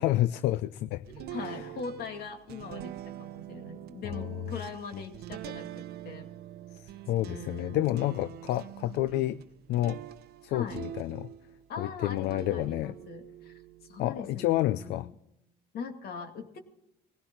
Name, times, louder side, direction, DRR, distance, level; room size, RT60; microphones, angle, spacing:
voice 1, 0.0-1.1 1.4-1.6 4.0-4.1 6.7-9.4 9.7-10.0 10.4-11.3 11.8-12.9 14.0-15.1, left 15 dB, 85° left, 16 dB, 0.5 m, -29 dB
sound 1, 1.1-11.7 12.1-14.4, right 13 dB, 70° right, 0.7 m, -44 dB
voice 2, 1.2-6.3 7.2-8.2 10.5-10.8 11.7-15.1 15.7-16.6, left 5 dB, 65° left, 5 dB, 2.4 m, -41 dB
20.5 x 17.0 x 3.9 m, 0.86 s
cardioid pair, 110°, 17 cm